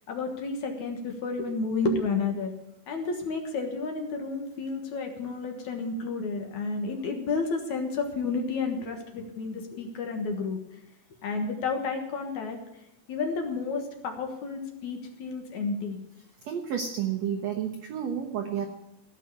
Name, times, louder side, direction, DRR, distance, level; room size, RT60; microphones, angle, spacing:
voice 1, 0.1-2.5 2.9-10.6 11.2-12.6 13.1-16.0, left 4 dB, 60° left, 4 dB, 2.5 m, -31 dB
voice 2, 16.4-18.7, right 8 dB, 80° right, 5 dB, 1.5 m, -31 dB
15.5 x 6.4 x 9.8 m, 0.86 s
omnidirectional pair, 4.4 m